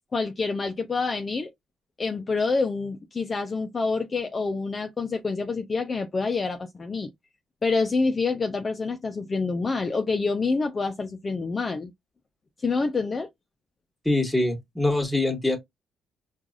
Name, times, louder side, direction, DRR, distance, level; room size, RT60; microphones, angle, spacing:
voice 1, 0.1-1.5 2.0-7.1 7.6-11.9 12.6-13.3, left 4 dB, 35° left, 0.6 m, -27 dB
voice 2, 14.0-15.6, left 2 dB, 5° left, 1.4 m, -24 dB
4.5 x 2.5 x 2.4 m
hypercardioid pair, 55°, 0 cm